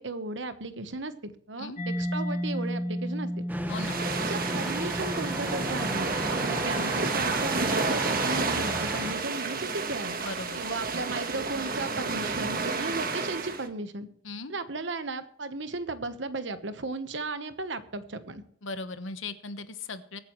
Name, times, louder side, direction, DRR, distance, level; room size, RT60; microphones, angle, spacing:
voice 1, 0.0-3.3 4.3-10.1 10.5-14.1 14.5-18.4, right 2 dB, 65° right, 10 dB, 1.2 m, -35 dB
Mallet percussion, 1.8-9.3, equal, 45° left, 3.2 m, -35 dB
sound 1, 3.5-9.1, right 1 dB, 10° right, 1.1 m, -34 dB
voice 2, 3.7-4.0 10.2-10.6 14.2-14.5 18.6-20.2, left 3 dB, 80° left, 10 dB, 1.2 m, -38 dB
sound 2, 3.7-13.7, right 4 dB, 50° right, 1.4 m, -31 dB
23.0 x 9.2 x 3.2 m, 0.64 s
head